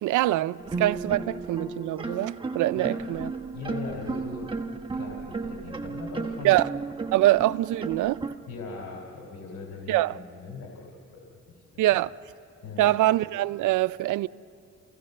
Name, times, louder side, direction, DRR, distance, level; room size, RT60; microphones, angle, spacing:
voice 1, 0.0-3.3 6.4-6.7 7.1-8.2 9.9-10.2 11.8-12.1 12.8-14.3, right 15 dB, 80° right, 0.5 m, -24 dB
sound 1, 0.6-8.3, right 4 dB, 15° right, 1.4 m, -34 dB
voice 2, 2.7-4.5 4.9-6.5 8.5-10.8 11.1-11.2 11.5-11.6 12.6-12.9, left 4 dB, 75° left, 3.5 m, -40 dB
30.0 x 16.5 x 6.6 m
cardioid pair, 90°, 30 cm